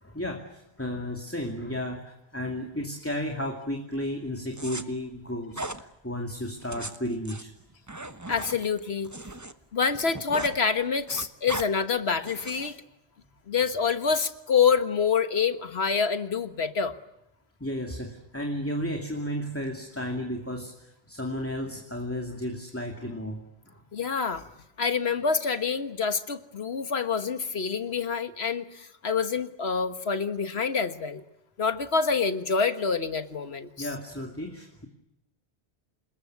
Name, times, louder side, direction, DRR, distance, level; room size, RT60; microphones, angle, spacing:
voice 1, 0.0-7.5 17.6-23.4 23.7-23.8 33.8-34.9, left 1 dB, 10° left, 2 dB, 2.6 m, -33 dB
sound 1, 4.5-4.8 5.5-5.8 6.6-9.5 9.8-10.6 10.9-11.7 12.2-12.7, right 2 dB, 15° right, 1.0 m, -38 dB
voice 2, 8.3-9.1 9.7-12.8 13.5-17.0 23.9-24.4 24.8-31.2 31.6-33.9, left 5 dB, 65° left, 10 dB, 1.7 m, -27 dB
28.5 x 20.0 x 9.5 m, 0.87 s
omnidirectional pair, 1.1 m